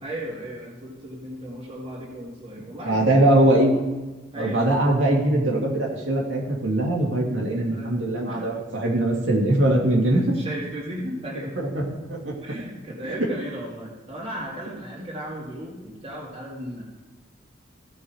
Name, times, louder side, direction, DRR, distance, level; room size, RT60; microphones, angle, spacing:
voice 1, 0.0-3.2 4.3-4.6 7.6-8.0 8.3-8.4 10.1-11.5 12.4-16.8, right 1 dB, 30° right, -6 dB, 2.3 m, -35 dB
voice 2, 2.8-3.8 4.4-10.4 11.6-12.4 13.0-13.3, right 1 dB, 85° right, -2 dB, 2.4 m, -21 dB
16.0 x 5.6 x 4.8 m, 1.2 s
head